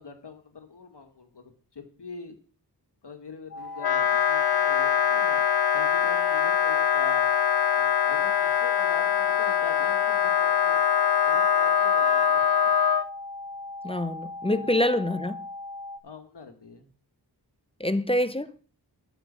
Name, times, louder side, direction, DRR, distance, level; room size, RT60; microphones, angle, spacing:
voice 1, 0.0-2.4 3.0-5.4 5.7-7.3 7.7-10.8 11.3-12.7 14.5-14.7 16.0-16.9, left 4 dB, 80° left, 2.0 m, -43 dB
sound 1, 3.5-16.0, left 2 dB, 35° left, 2.1 m, -39 dB
Wind instrument woodwind instrument, 3.8-13.0, left 8 dB, 65° left, 0.7 m, -23 dB
voice 2, 13.8-15.4 17.8-18.5, left 1 dB, 15° left, 0.8 m, -26 dB
13.0 x 6.1 x 6.8 m
wide cardioid pair, 70°, 40 cm